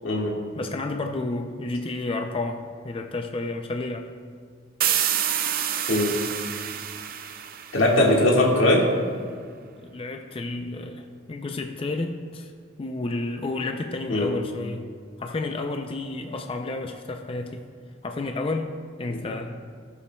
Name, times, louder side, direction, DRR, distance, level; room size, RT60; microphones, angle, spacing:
voice 1, 0.0-0.4 5.9-6.2 7.7-8.9 14.1-14.3 19.1-19.2, left 1 dB, 90° left, -1 dB, 1.7 m, -20 dB
voice 2, 0.6-4.1 9.8-12.5 12.8-14.9 15.2-17.7 18.0-19.5, left 2 dB, 30° left, 4 dB, 0.4 m, -31 dB
sound 1, 4.8-8.4, right 10 dB, 50° right, 0.5 m, -28 dB
18.0 x 7.0 x 2.3 m, 2.1 s
head